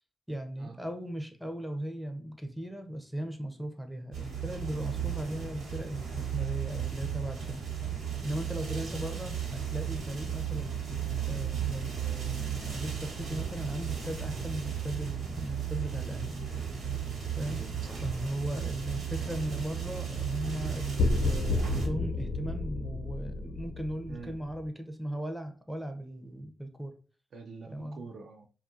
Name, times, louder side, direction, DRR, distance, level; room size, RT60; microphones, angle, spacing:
voice 1, 0.3-7.6 8.2-10.8 11.3-16.5 17.4-17.6 18.0-27.0 27.7-28.1, right 1 dB, ahead, 0.5 m, -37 dB
sound 1, 4.1-21.9, right 8 dB, 85° right, 0.9 m, -35 dB
voice 2, 8.6-9.0 17.4-18.1 24.1-24.4 27.3-28.5, right 4 dB, 65° right, 0.3 m, -45 dB
sound 2, 21.0-24.7, left 3 dB, 80° left, 0.8 m, -31 dB
2.7 x 2.4 x 2.5 m
cardioid pair, 75°, 0 cm